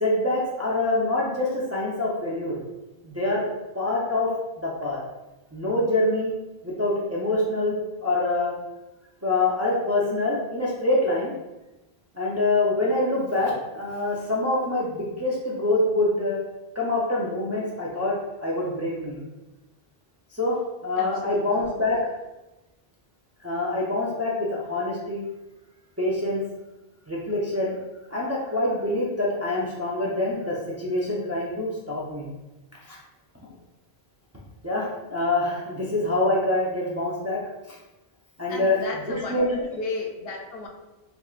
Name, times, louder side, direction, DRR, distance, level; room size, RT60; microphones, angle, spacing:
voice 1, 0.0-2.6 3.0-3.4 3.7-4.3 4.6-5.0 5.5-6.3 6.6-8.5 9.2-11.3 12.1-16.4 16.7-18.1 18.4-19.2 20.3-20.6 20.8-22.0 23.4-25.2 26.0-26.4 27.1-27.8 28.1-32.3 32.9-33.0 34.6-37.4 38.4-38.8 39.1-39.6, left 2 dB, 20° right, -5 dB, 0.4 m, -25 dB
voice 2, 21.0-21.5 38.5-40.7, left 3 dB, 70° left, 2 dB, 0.7 m, -34 dB
3.5 x 3.1 x 2.4 m, 1.0 s
omnidirectional pair, 1.0 m